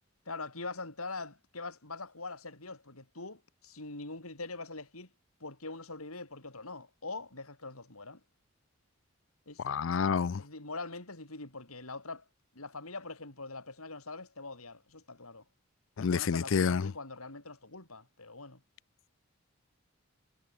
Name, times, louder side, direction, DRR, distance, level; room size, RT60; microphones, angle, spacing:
voice 1, 0.3-5.1 5.4-8.2 9.5-9.6 10.4-12.3 12.5-15.4 16.0-18.6, left 3 dB, 90° left, 5.8 m, -43 dB
voice 2, 9.6-10.4 16.0-16.9, left 6 dB, 65° left, 0.4 m, -28 dB
head